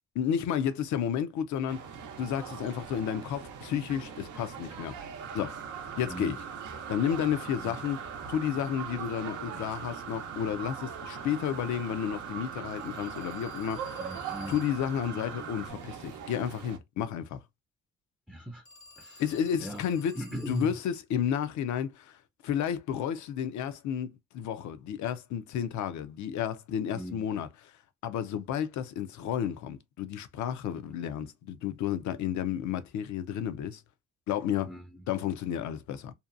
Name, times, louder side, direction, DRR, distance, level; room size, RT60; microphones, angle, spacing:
voice 1, 0.1-1.9 2.2-5.0 5.3-5.6 6.0-6.4 6.9-8.0 8.3-14.2 14.5-17.4 19.2-27.7 28.0-33.8 34.3-34.7 35.1-36.1, left 9 dB, 70° left, 0.5 m, -32 dB
sound 1, 1.7-16.8, right 7 dB, 90° right, 0.6 m, -43 dB
sound 2, 5.2-15.7, right 6 dB, 50° right, 0.7 m, -43 dB
Telephone, 12.7-15.0 18.7-20.9, left 3 dB, 90° left, 1.3 m, -54 dB
voice 2, 14.0-14.6 18.3-18.6 19.0-19.2 19.6-19.8 20.1-20.8 26.9-27.3 30.7-30.8 34.7-35.0, equal, 5° right, 0.4 m, -38 dB
2.7 x 2.2 x 2.4 m
cardioid pair, 90°, 30 cm